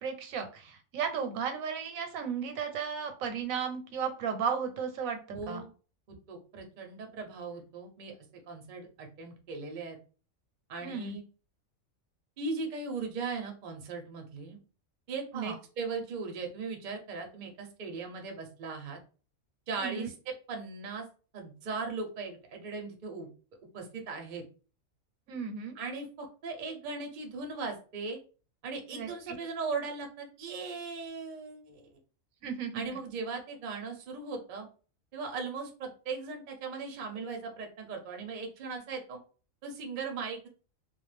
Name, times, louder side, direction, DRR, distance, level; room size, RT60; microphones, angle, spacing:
voice 1, 0.0-5.2 5.5-5.6 10.8-11.2 15.3-15.6 19.8-20.1 25.3-25.8 28.9-29.4 32.4-32.9, right 6 dB, 85° right, 6 dB, 1.0 m, -34 dB
voice 2, 5.3-5.7 6.1-8.1 8.5-10.0 10.7-11.2 12.4-14.6 15.1-19.0 19.7-20.1 20.5-21.1 21.3-23.3 23.7-24.4 25.8-28.2 28.6-31.9 32.7-34.7 35.1-39.2 39.6-40.5, right 4 dB, 50° right, 3 dB, 0.6 m, -38 dB
2.4 x 2.3 x 3.1 m, 0.37 s
omnidirectional pair, 1.4 m